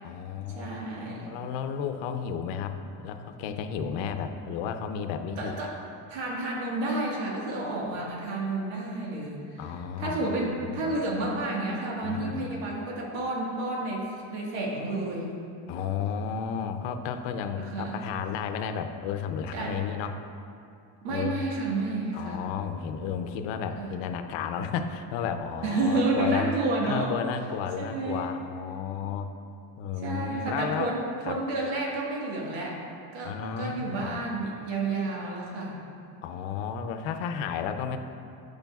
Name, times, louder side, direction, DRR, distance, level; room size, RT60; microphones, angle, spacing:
voice 1, 0.0-5.7 9.6-11.0 12.0-12.6 15.7-20.2 21.1-21.4 22.1-26.5 26.8-29.3 29.8-30.9 31.2-31.3 33.2-34.2 36.2-38.0, left 7 dB, 70° left, 7 dB, 0.7 m, -33 dB
voice 2, 0.5-1.3 5.4-5.7 6.1-15.4 17.6-18.0 19.5-19.8 21.0-22.4 23.8-24.0 25.6-27.2 27.8-28.3 30.0-32.8 33.1-35.8, right 2 dB, 75° right, -3 dB, 1.7 m, -30 dB
13.0 x 5.1 x 2.4 m, 2.5 s
supercardioid pair, 100°, 46 cm